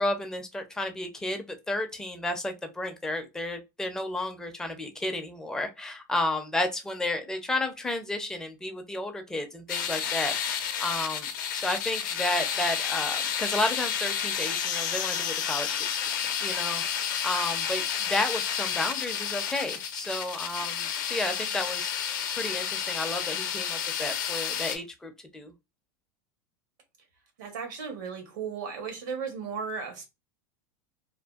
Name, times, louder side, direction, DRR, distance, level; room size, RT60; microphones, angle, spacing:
voice 1, 0.0-11.3 11.5-16.1 16.4-25.5, left 1 dB, 5° left, 0.4 m, -32 dB
sound 1, 9.7-24.8, left 8 dB, 80° left, 0.5 m, -31 dB
voice 2, 27.4-30.1, right 6 dB, 90° right, 1.0 m, -35 dB
2.5 x 2.2 x 2.3 m
supercardioid pair, 145°, 10 cm